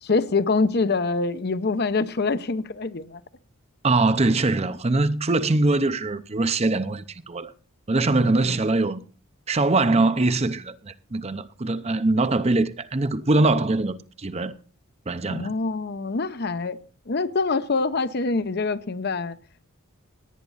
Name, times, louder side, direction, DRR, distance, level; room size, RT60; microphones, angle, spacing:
voice 1, 0.0-3.2 8.4-8.6 15.3-16.8 17.1-19.4, left 3 dB, 50° left, 0.7 m, -25 dB
voice 2, 3.8-7.5 7.9-9.0 9.5-14.5 15.1-15.5, right 2 dB, 30° right, 0.7 m, -22 dB
17.5 x 9.5 x 4.0 m
head